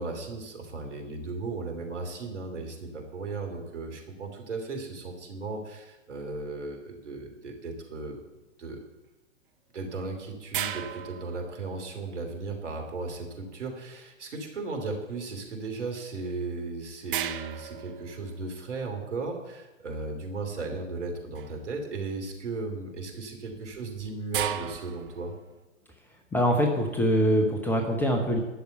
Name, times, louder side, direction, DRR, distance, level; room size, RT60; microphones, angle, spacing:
voice 1, 0.0-8.2 8.6-8.8 9.7-25.3, right 3 dB, 65° right, 3 dB, 3.0 m, -36 dB
sound 1, 10.5-12.1 16.3-16.4 17.1-18.7 21.3-21.7 22.2-22.6 23.4-25.4, right 11 dB, 45° right, 0.7 m, -36 dB
voice 2, 26.3-28.4, equal, 5° left, 1 dB, 0.8 m, -24 dB
11.5 x 6.9 x 8.0 m, 1.1 s
figure-of-eight pair, 110°, 39 cm